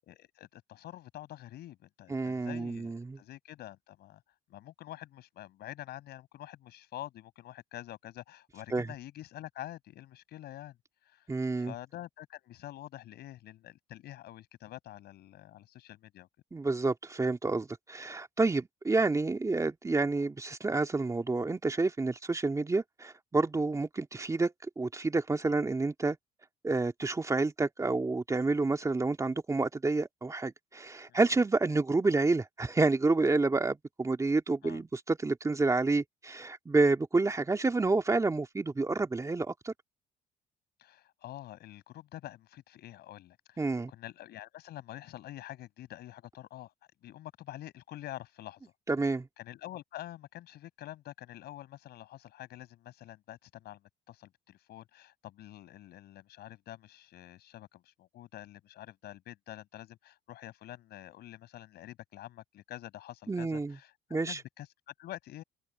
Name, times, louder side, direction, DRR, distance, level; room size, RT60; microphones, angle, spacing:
voice 1, 0.0-4.2 4.5-10.8 11.1-11.3 11.5-16.3 31.1-31.2 34.6-34.8 40.8-46.7 47.0-48.7 49.4-65.4, left 14 dB, 70° left, 7.0 m, -47 dB
voice 2, 2.1-3.2 8.7-8.9 11.3-11.7 16.5-26.2 26.6-39.7 43.6-43.9 48.9-49.3 63.3-63.8 64.1-64.4, right 3 dB, 20° right, 2.4 m, -29 dB
cardioid pair, 110°, 17 cm